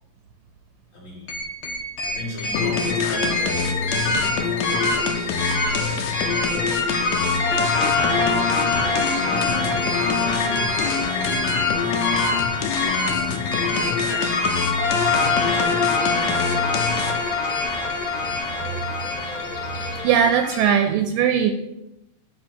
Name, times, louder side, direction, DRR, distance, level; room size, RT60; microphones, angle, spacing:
voice 1, 0.9-1.4 2.0-3.3 3.8-5.3 5.8-6.0 8.2-11.0 13.2-14.5 15.0-16.0 16.3-17.2 17.6-18.0, left 1 dB, 35° left, -6 dB, 3.6 m, -37 dB
sound 1, 1.3-20.7, left 3 dB, 50° left, 1.6 m, -24 dB
Bird, 2.4-20.0, left 2 dB, 65° left, 1.5 m, -40 dB
sound 2, 2.5-17.3, left 6 dB, 80° left, 1.5 m, -27 dB
voice 2, 19.8-21.5, right 8 dB, 80° right, 6 dB, 2.1 m, -20 dB
11.0 x 4.2 x 4.4 m, 0.92 s
omnidirectional pair, 4.0 m